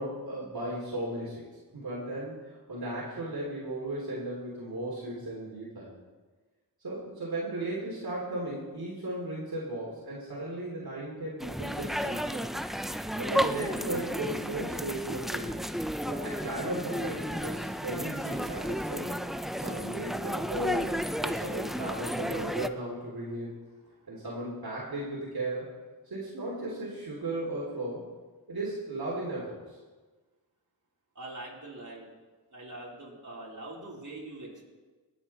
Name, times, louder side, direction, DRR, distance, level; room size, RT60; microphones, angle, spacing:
voice 1, 0.0-1.5 1.7-2.4 2.7-5.9 6.8-12.4 13.2-15.6 16.1-19.2 19.5-23.6 24.1-25.7 26.0-28.0 28.5-29.8, right 1 dB, 65° right, -5 dB, 3.3 m, -36 dB
sound 1, 11.4-22.7, equal, ahead, 0.6 m, -33 dB
voice 2, 31.2-32.1 32.5-34.7, right 2 dB, 45° right, -4 dB, 4.2 m, -43 dB
19.0 x 8.2 x 4.4 m, 1.3 s
cardioid pair, 40°, 40 cm